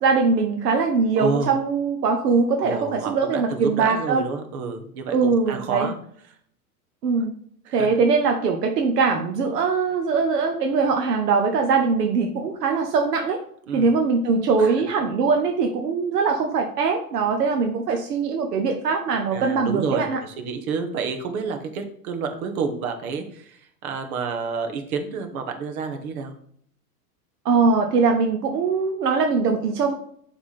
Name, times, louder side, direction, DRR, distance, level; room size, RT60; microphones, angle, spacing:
voice 1, 0.0-4.3 5.1-5.9 7.0-7.3 7.7-13.4 13.7-20.2 27.4-29.9, right 4 dB, 85° right, 4 dB, 1.0 m, -21 dB
voice 2, 1.1-1.5 2.6-5.9 7.6-7.9 13.7-13.9 14.6-14.7 17.9-18.0 19.3-26.3, right 5 dB, 65° right, 6 dB, 1.4 m, -29 dB
7.1 x 3.7 x 4.2 m, 0.64 s
hypercardioid pair, 120°, 46 cm